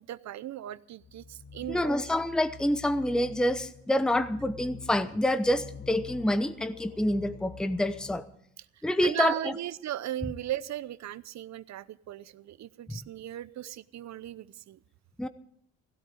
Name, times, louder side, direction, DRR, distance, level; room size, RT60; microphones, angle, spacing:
voice 1, 0.0-2.0 9.0-14.8, right 12 dB, 65° right, 17 dB, 0.7 m, -37 dB
sound 1, 1.0-8.2, left 6 dB, 65° left, 1.9 m, -47 dB
voice 2, 1.7-8.2 8.8-9.5 15.2-15.3, left 1 dB, ahead, 12 dB, 0.7 m, -27 dB
16.5 x 12.5 x 5.0 m, 0.68 s
cardioid pair, 90°, 30 cm